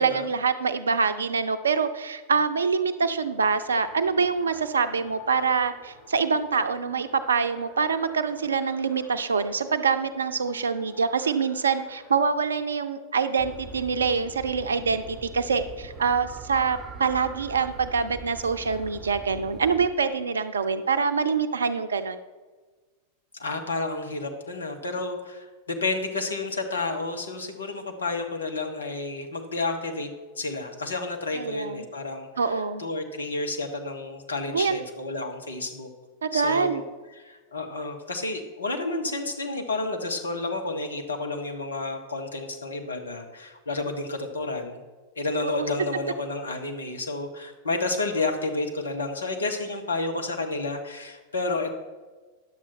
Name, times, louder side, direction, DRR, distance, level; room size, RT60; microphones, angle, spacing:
voice 1, 0.0-22.2 31.3-31.9 32.4-32.8 34.5-34.8 36.2-36.8 45.4-45.7, right 5 dB, 70° right, 11 dB, 0.5 m, -25 dB
Race car auto racing, 3.0-12.2, left 2 dB, 30° left, 2.0 m, -50 dB
sound 1, 13.4-19.9, right 3 dB, 25° right, 1.0 m, -42 dB
voice 2, 23.3-30.1 30.4-32.5 32.8-35.9 36.3-36.8 37.2-44.8 45.2-51.7, left 3 dB, 75° left, 4 dB, 1.0 m, -30 dB
10.0 x 7.4 x 4.3 m, 1.3 s
figure-of-eight pair, 90°, 0 cm